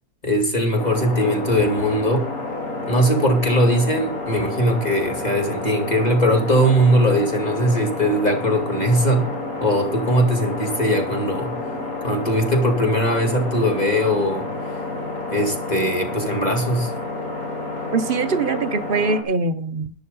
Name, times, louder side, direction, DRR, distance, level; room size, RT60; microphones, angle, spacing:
voice 1, 0.2-2.3 2.9-9.3 9.6-11.6 12.0-14.5 15.3-16.9, equal, 30° left, 2.6 m, -20 dB
sound 1, 0.8-19.2, left 2 dB, 70° left, 3.7 m, -29 dB
voice 2, 17.9-19.9, right 4 dB, 45° right, 0.8 m, -22 dB
11.0 x 10.5 x 5.4 m
omnidirectional pair, 1.5 m